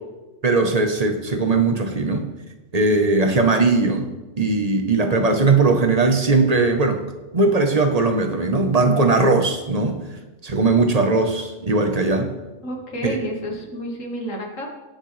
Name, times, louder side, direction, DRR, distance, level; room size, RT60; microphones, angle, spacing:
voice 1, 0.4-2.2 2.7-4.1 4.4-7.0 7.3-10.0 10.4-12.3 13.0-13.2, right 3 dB, 35° right, 5 dB, 1.0 m, -19 dB
voice 2, 12.6-14.7, equal, 80° left, 1 dB, 2.1 m, -30 dB
18.0 x 6.6 x 3.3 m, 1.1 s
omnidirectional pair, 1.3 m